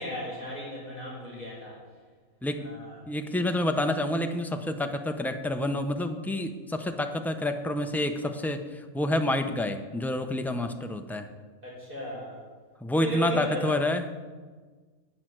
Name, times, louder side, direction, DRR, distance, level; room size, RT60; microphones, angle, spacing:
voice 1, 0.0-1.8 2.6-3.0 11.6-12.4 12.9-13.8, equal, 35° right, -4 dB, 5.2 m, -36 dB
voice 2, 3.1-11.3 12.8-14.2, left 1 dB, ahead, 6 dB, 0.4 m, -28 dB
10.5 x 9.5 x 7.8 m, 1.4 s
omnidirectional pair, 1.5 m